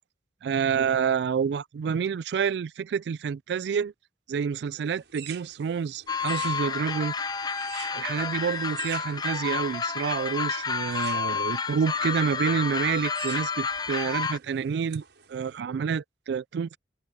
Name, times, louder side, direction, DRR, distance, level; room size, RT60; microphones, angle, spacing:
voice 1, 0.4-3.9 4.3-7.1 7.9-15.0 15.3-16.8, right 6 dB, 70° right, 0.3 m, -28 dB
sound 1, 4.8-15.6, right 9 dB, 90° right, 6.9 m, -47 dB
sound 2, 6.1-14.4, left 5 dB, 20° left, 0.6 m, -30 dB
open air
head